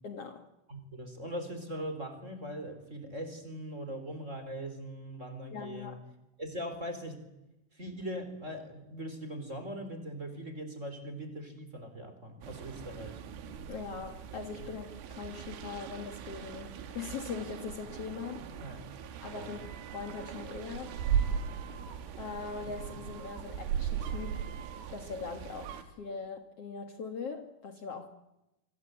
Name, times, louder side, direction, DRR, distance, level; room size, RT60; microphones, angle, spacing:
voice 1, 0.0-0.5 5.5-6.0 13.7-18.5 19.2-19.6 19.9-21.0 22.2-24.5 24.9-28.1, left 5 dB, 85° left, 1.3 m, -41 dB
voice 2, 0.7-6.0 6.4-7.2 7.7-13.2 18.6-18.8 19.3-19.5, equal, 15° right, 3.4 m, -40 dB
sound 1, 12.4-25.8, right 8 dB, 85° right, 4.4 m, -38 dB
26.5 x 25.5 x 8.2 m
omnidirectional pair, 5.5 m